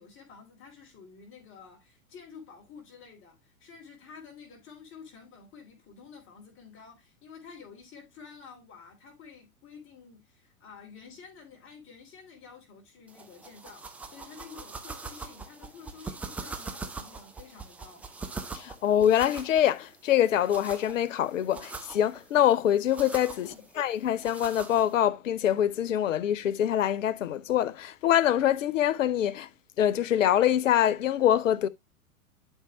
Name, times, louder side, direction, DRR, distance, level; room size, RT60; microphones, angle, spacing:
voice 1, 0.0-18.0 23.3-23.7, left 6 dB, 30° left, 3.0 m, -50 dB
sound 1, 13.1-25.1, right 4 dB, 5° right, 0.4 m, -43 dB
voice 2, 18.5-29.5 29.8-31.7, left 11 dB, 60° left, 0.7 m, -25 dB
11.5 x 4.5 x 2.9 m
figure-of-eight pair, 95°, 43 cm